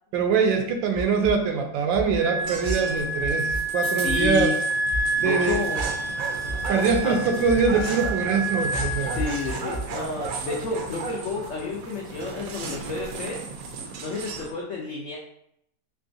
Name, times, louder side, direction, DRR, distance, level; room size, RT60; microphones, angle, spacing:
voice 1, 0.1-4.5 5.2-5.6 6.7-9.2, right 5 dB, 85° right, 4 dB, 1.4 m, -23 dB
sound 1, 0.9-1.3 1.9-2.2 2.6-2.7 3.2-3.6 4.1-4.4 4.9-5.0 5.5-5.9 6.5-7.0 7.5-8.1 8.7-9.8, right 1 dB, 25° left, 0.7 m, -31 dB
Wind instrument woodwind instrument, 2.2-9.6, right 1 dB, 45° left, 1.3 m, -29 dB
sound 2, 2.4-14.5, right 4 dB, 70° right, 0.8 m, -35 dB
voice 2, 4.0-4.6 5.2-5.9 7.0-7.2 9.2-13.4 14.0-15.2, left 4 dB, 80° left, -2 dB, 0.7 m, -30 dB
3.7 x 3.3 x 2.6 m, 0.75 s
omnidirectional pair, 2.0 m